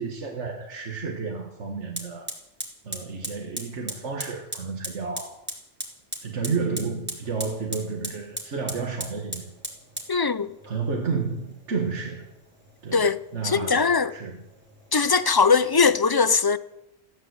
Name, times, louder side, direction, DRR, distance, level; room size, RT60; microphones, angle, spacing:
voice 1, 0.0-2.3 2.8-5.4 6.2-9.5 10.7-12.3 12.8-14.4, right 4 dB, 90° right, 1.9 m, -31 dB
Fire, 0.9-1.0 2.0-16.0, equal, 10° right, 3.4 m, -39 dB
voice 2, 10.1-10.5 12.9-13.2 13.4-14.1 14.9-16.6, left 5 dB, 30° left, 0.5 m, -20 dB
15.5 x 11.0 x 8.1 m
omnidirectional pair, 1.2 m